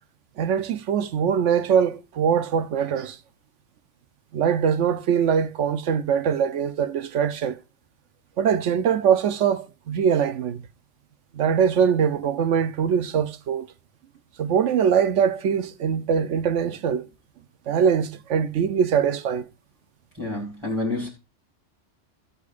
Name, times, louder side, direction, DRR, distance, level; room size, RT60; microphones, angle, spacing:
voice 1, 0.4-3.2 4.3-7.6 8.4-10.6 11.3-13.7 14.4-17.1 17.7-19.4, right 7 dB, 85° right, 1.1 m, -22 dB
voice 2, 20.2-21.1, left 2 dB, 25° right, 3.0 m, -28 dB
15.5 x 8.3 x 2.5 m
omnidirectional pair, 1.2 m